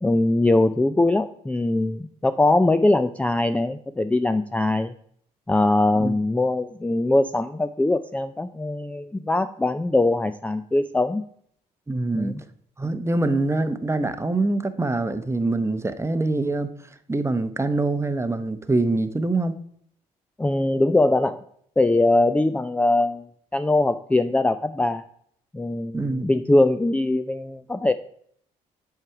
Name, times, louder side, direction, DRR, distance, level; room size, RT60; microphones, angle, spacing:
voice 1, 0.0-4.9 5.5-11.2 12.1-12.4 20.4-21.4 21.8-23.2 23.5-25.0 25.5-27.9, left 2 dB, 5° left, 10 dB, 0.4 m, -21 dB
voice 2, 11.9-12.4 12.8-16.7 17.1-19.5 25.9-26.3, right 2 dB, 15° right, 10 dB, 0.8 m, -24 dB
7.5 x 4.8 x 4.7 m, 0.65 s
hypercardioid pair, 55°, 18 cm